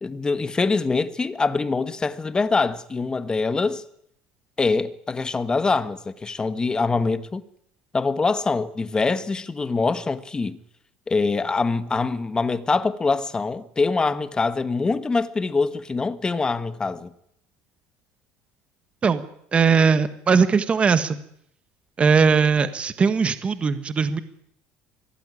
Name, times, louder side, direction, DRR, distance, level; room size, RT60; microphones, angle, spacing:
voice 1, 0.0-3.8 4.6-7.4 7.9-10.6 11.1-17.1, left 4 dB, 15° left, 1.3 m, -24 dB
voice 2, 19.5-21.2 22.0-24.2, right 5 dB, 25° right, 1.4 m, -19 dB
23.0 x 17.0 x 9.9 m
cardioid pair, 145°, 5 cm